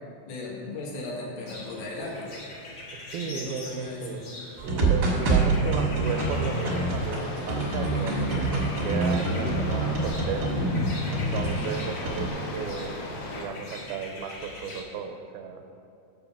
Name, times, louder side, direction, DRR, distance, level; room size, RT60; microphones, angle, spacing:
voice 1, 0.3-2.3 3.2-4.2 11.5-11.7, left 2 dB, 85° left, -4 dB, 3.4 m, -37 dB
sound 1, 1.5-14.8, left 2 dB, 50° left, 1.2 m, -43 dB
voice 2, 3.1-4.3 4.6-10.5 11.1-13.0 13.4-15.6, right 6 dB, 90° right, 5 dB, 2.5 m, -34 dB
sound 2, 4.6-11.6 12.0-12.3, right 2 dB, 65° right, 1.0 m, -26 dB
sound 3, 6.0-13.5, left 2 dB, 70° left, 2.6 m, -36 dB
6.7 x 5.6 x 7.2 m, 2.5 s
omnidirectional pair, 4.2 m